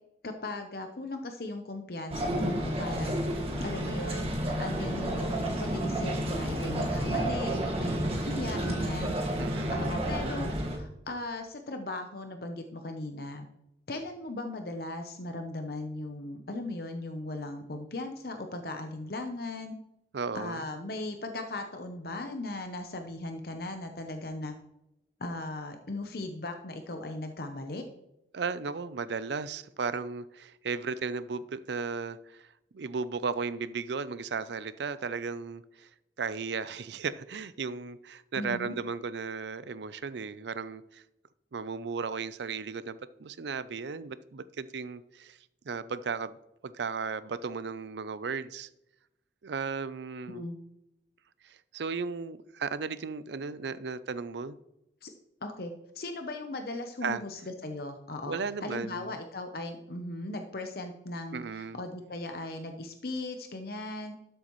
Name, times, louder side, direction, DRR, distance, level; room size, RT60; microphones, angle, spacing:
voice 1, 0.2-3.2 3.6-4.3 4.6-9.2 9.7-13.5 13.9-19.7 20.3-24.5 25.2-27.8 38.3-38.8 50.3-50.6 55.0-55.1 55.4-64.1, left 2 dB, 55° left, 6 dB, 0.8 m, -38 dB
sound 1, 2.1-10.8, right 1 dB, 35° right, 1.6 m, -31 dB
voice 2, 9.4-9.9 20.1-20.6 28.3-32.5 32.7-35.9 36.2-41.0 41.5-45.4 45.6-46.4 46.6-48.7 49.4-50.4 51.4-54.6 57.0-57.2 58.2-59.1 61.3-61.8, right 5 dB, 70° right, 16 dB, 0.5 m, -35 dB
12.5 x 8.0 x 3.1 m, 0.87 s
head